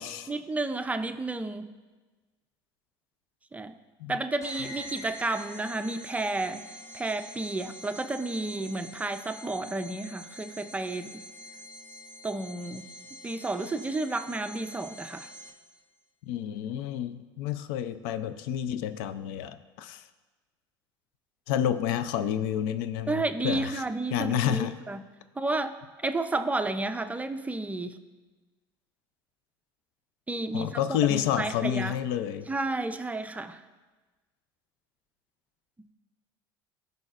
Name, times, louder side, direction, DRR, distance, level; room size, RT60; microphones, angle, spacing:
voice 1, 0.3-1.7 3.5-3.8 4.1-6.7 6.9-11.2 12.2-12.9 13.2-15.3 23.1-25.0 25.4-28.0 30.3-30.8 31.1-31.9 32.5-33.6, right 2 dB, 10° right, 9 dB, 0.4 m, -31 dB
sound 1, 4.4-15.8, equal, 25° left, 1.4 m, -46 dB
voice 2, 16.3-20.0 21.5-23.8 24.1-24.7 30.5-32.5, left 10 dB, 75° left, 12 dB, 0.5 m, -29 dB
14.5 x 5.4 x 2.5 m, 1.2 s
supercardioid pair, 95°, 12 cm